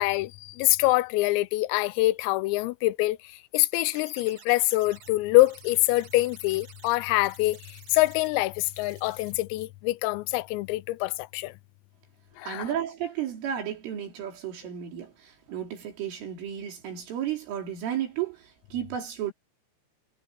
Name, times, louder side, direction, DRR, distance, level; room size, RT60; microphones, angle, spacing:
voice 1, 0.0-3.2 3.5-11.5 12.4-12.7, left 19 dB, 90° left, 3.4 m, -25 dB
sound 1, 3.7-5.1 5.4-7.0 7.2-8.3 8.6-9.3 9.6-9.7, right 6 dB, 40° right, 4.3 m, -52 dB
voice 2, 12.5-19.3, right 10 dB, 70° right, 6.1 m, -33 dB
omnidirectional pair, 5.9 m